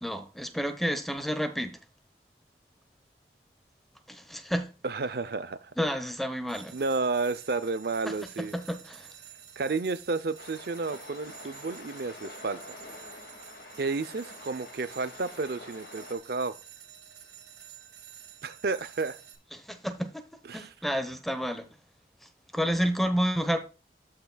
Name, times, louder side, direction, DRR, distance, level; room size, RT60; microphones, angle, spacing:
voice 1, 0.0-1.8 4.1-4.7 5.8-6.7 8.5-9.1 19.5-20.2 20.5-21.7 22.5-23.6, equal, ahead, 1.0 m, -30 dB
voice 2, 4.8-5.7 6.7-8.5 9.6-12.8 13.8-16.6 18.4-19.2 20.5-20.7, right 3 dB, 60° right, 0.5 m, -31 dB
sound 1, 6.5-19.3, right 10 dB, 85° right, 2.4 m, -50 dB
sound 2, 10.4-16.2, left 3 dB, 60° left, 2.1 m, -47 dB
13.5 x 5.9 x 2.3 m
head